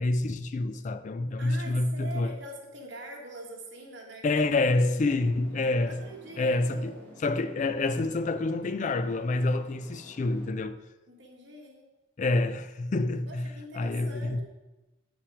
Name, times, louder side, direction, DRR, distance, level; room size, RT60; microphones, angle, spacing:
voice 1, 0.0-2.4 4.2-6.1 6.4-10.9 12.2-14.4, left 2 dB, 35° left, 0.3 m, -27 dB
voice 2, 1.4-4.6 5.0-5.4 5.9-7.2 11.1-11.9 13.3-14.4, right 2 dB, 60° right, 1.7 m, -44 dB
sound 1, 5.2-10.5, equal, 10° left, 1.7 m, -52 dB
8.4 x 5.8 x 4.9 m
head